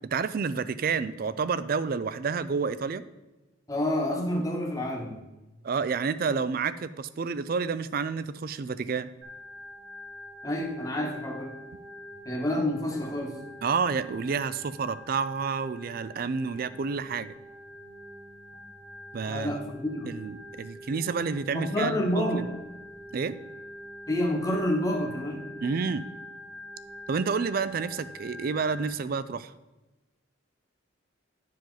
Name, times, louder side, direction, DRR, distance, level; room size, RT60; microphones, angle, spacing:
voice 1, 0.0-3.0 5.6-9.1 13.6-17.3 19.1-19.6 20.0-22.5 23.1-23.3 25.6-26.1 27.1-29.5, right 5 dB, 45° right, 15 dB, 0.3 m, -29 dB
voice 2, 3.7-5.2 10.4-11.5 12.2-13.4 19.3-20.1 21.5-22.5 24.1-25.5, left 1 dB, 15° left, 0 dB, 1.2 m, -28 dB
Organ, 9.2-28.9, equal, 85° right, 1.8 m, -45 dB
10.0 x 5.0 x 3.9 m, 1.1 s
head